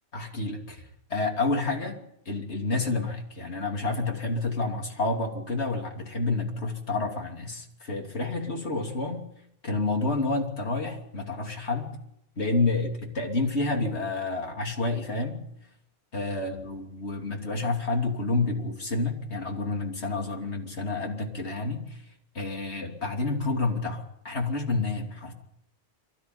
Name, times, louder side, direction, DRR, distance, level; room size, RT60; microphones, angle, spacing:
voice 1, 0.1-0.8 1.1-2.0 2.2-9.3 9.6-11.9 12.4-15.4 16.1-22.0 22.3-25.3, left 3 dB, 65° left, 2 dB, 3.3 m, -29 dB
23.5 x 14.0 x 9.6 m, 0.78 s
omnidirectional pair, 1.2 m